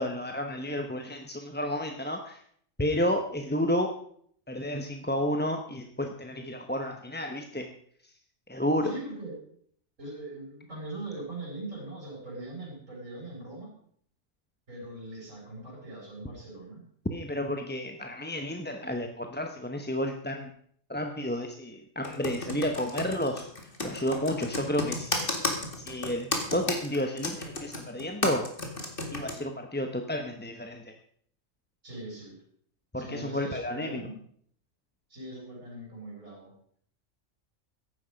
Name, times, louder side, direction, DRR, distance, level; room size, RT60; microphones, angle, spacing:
voice 1, 0.0-2.4 2.8-4.0 4.5-7.7 8.0-8.1 8.5-8.9 17.1-20.5 20.9-28.5 29.1-30.9 32.9-34.1, left 1 dB, 10° left, 4 dB, 0.8 m, -31 dB
voice 2, 8.8-9.4 10.0-13.7 14.7-16.9 31.8-32.4 33.0-34.2 35.1-36.5, right 2 dB, 65° right, -5 dB, 6.6 m, -41 dB
Computer keyboard, 22.0-29.3, left 2 dB, 40° left, 2.5 m, -32 dB
14.5 x 11.0 x 5.2 m, 0.62 s
omnidirectional pair, 1.4 m